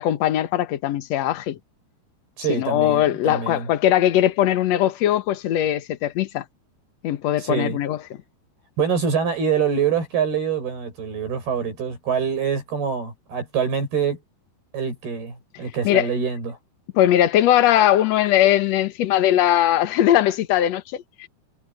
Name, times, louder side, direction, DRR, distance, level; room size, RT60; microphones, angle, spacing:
voice 1, 0.0-1.6 2.5-6.4 7.0-8.0 15.8-16.1 16.9-21.3, left 12 dB, 65° left, 1.8 m, -20 dB
voice 2, 2.4-3.7 7.4-7.8 8.8-14.2 14.7-16.6, right 6 dB, 75° right, 8.6 m, -25 dB
omnidirectional pair, 4.5 m